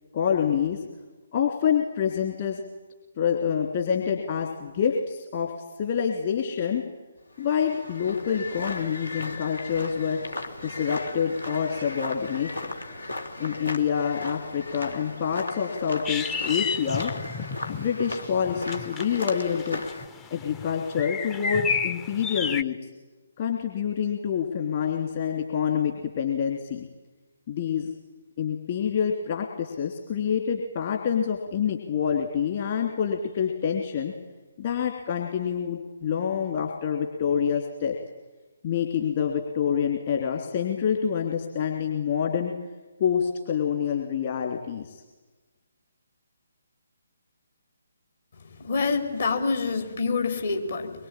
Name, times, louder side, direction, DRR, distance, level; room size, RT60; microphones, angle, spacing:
voice 1, 0.1-0.8 1.3-2.6 3.2-5.5 5.8-6.8 7.4-10.2 10.6-12.5 13.4-17.1 17.7-19.8 20.3-22.9 23.4-26.9 27.5-27.9 28.4-34.1 34.6-37.9 38.6-42.5 43.0-45.0, left 7 dB, 35° left, 1 dB, 3.1 m, -27 dB
sound 1, 7.3-20.1, left 2 dB, 75° left, 3.2 m, -37 dB
sound 2, 16.0-22.6, left 5 dB, 15° left, 0.8 m, -32 dB
voice 2, 48.6-50.9, left 4 dB, 55° left, 4 dB, 4.8 m, -26 dB
24.0 x 23.5 x 9.1 m, 1.2 s
figure-of-eight pair, 140°, 0 cm